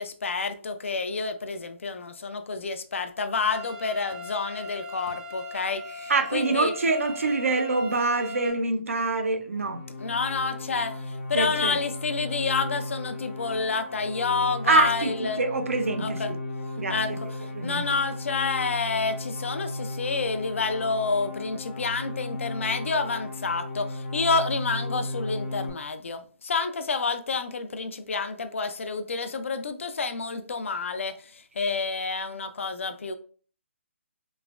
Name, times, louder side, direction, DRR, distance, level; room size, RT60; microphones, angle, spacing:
voice 1, 0.0-6.7 10.0-15.4 16.0-16.3 16.9-17.1 17.6-33.1, left 4 dB, 70° left, 0.4 m, -29 dB
sound 1, 3.5-8.5, left 2 dB, 35° right, 0.6 m, -39 dB
voice 2, 6.1-9.9 11.3-11.8 14.6-16.4 16.8-17.2 17.5-17.9, right 3 dB, 80° right, 0.5 m, -25 dB
sound 2, 9.4-25.7, left 2 dB, 45° left, 0.7 m, -35 dB
3.1 x 2.1 x 2.4 m
hypercardioid pair, 155°, 7 cm